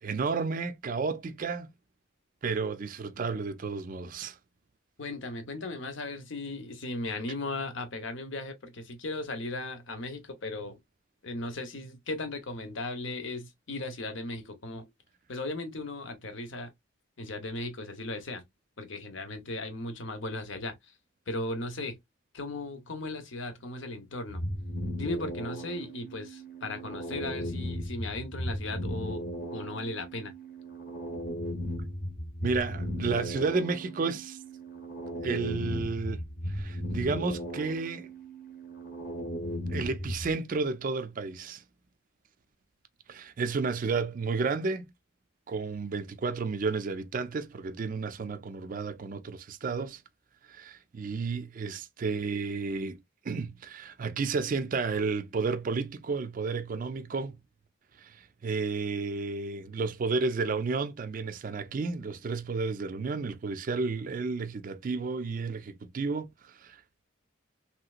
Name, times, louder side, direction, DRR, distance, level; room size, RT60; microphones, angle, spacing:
voice 1, 0.0-1.7 2.4-4.4 32.4-34.4 35.2-36.2 36.5-38.1 39.7-41.6 43.1-44.9 45.5-50.0 50.5-53.0 53.2-57.4 58.0-66.8, right 4 dB, 40° right, 0.4 m, -32 dB
voice 2, 5.0-10.8 11.2-14.9 15.3-16.7 17.2-18.4 18.8-20.7 21.3-22.0 22.3-24.5 25.0-30.3, left 2 dB, 70° left, 0.9 m, -37 dB
sound 1, 24.3-40.3, equal, 45° left, 0.8 m, -36 dB
3.2 x 2.8 x 2.4 m
head